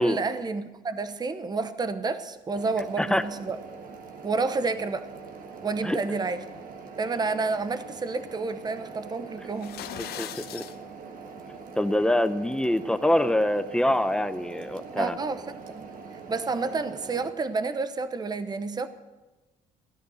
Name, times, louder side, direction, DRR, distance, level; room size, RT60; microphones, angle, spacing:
voice 1, 0.0-3.6 4.2-5.1 5.6-6.4 7.0-9.8 15.0-18.9, right 4 dB, 25° right, 0.9 m, -30 dB
sound 1, 2.5-17.3, right 4 dB, 55° right, 1.6 m, -43 dB
sound 2, 9.5-10.8, left 11 dB, 70° left, 0.8 m, -39 dB
voice 2, 10.0-10.6 11.8-15.2, left 1 dB, 5° left, 0.7 m, -25 dB
16.5 x 11.0 x 6.4 m
cardioid pair, 110°, 17 cm